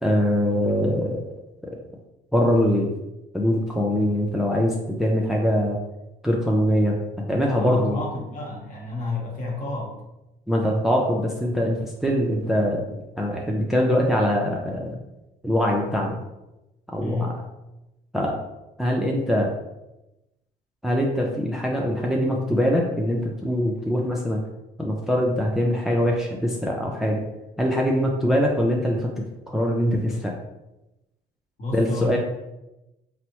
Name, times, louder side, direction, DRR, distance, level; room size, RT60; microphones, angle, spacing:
voice 1, 0.0-1.3 2.3-2.9 3.3-5.8 6.2-7.0 7.3-8.0 10.5-15.0 15.4-16.2 16.9-17.3 18.1-18.4 18.8-19.6 20.8-24.4 24.8-27.2 27.6-29.1 29.5-30.3 31.7-32.2, equal, ahead, -1 dB, 0.3 m, -23 dB
voice 2, 7.5-10.0 17.0-17.4 31.6-32.2, left 2 dB, 45° left, -1 dB, 1.0 m, -30 dB
4.2 x 2.0 x 2.9 m, 0.96 s
cardioid pair, 110°, 17 cm